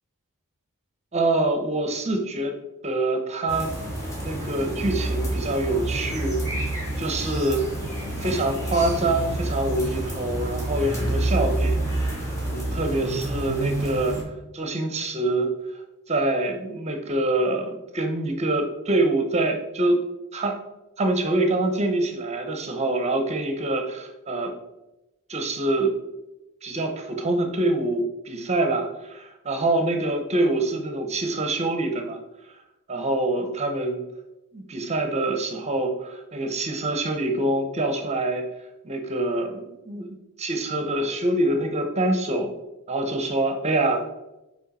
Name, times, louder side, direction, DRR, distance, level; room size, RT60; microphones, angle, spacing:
voice 1, 1.1-2.5 2.8-3.7 4.2-6.4 7.0-7.7 8.2-15.5 16.1-20.0 20.3-20.6 21.0-24.5 25.3-25.9 26.6-32.2 32.9-34.0 34.5-38.5 38.8-40.1 40.4-42.5 42.9-44.1, right 2 dB, 30° right, 4 dB, 0.8 m, -25 dB
sound 1, 3.5-14.2, right 1 dB, 15° left, 1.8 m, -28 dB
6.4 x 4.7 x 4.1 m, 0.97 s
head